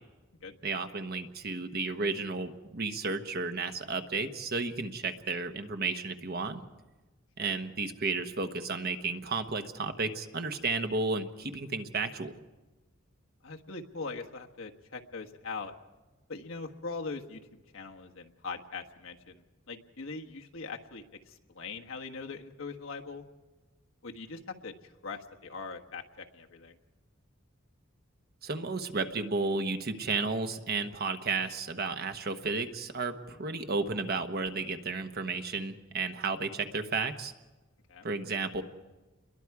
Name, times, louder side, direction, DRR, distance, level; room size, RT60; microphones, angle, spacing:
voice 1, 0.6-6.6 7.4-12.3 28.4-37.3 38.0-38.6, right 3 dB, 50° right, 8 dB, 1.1 m, -33 dB
voice 2, 13.4-15.7 16.3-23.2 24.0-24.7 25.0-26.8 37.9-38.1, left 4 dB, 90° left, 2 dB, 1.4 m, -41 dB
28.5 x 22.0 x 4.8 m, 1.2 s
head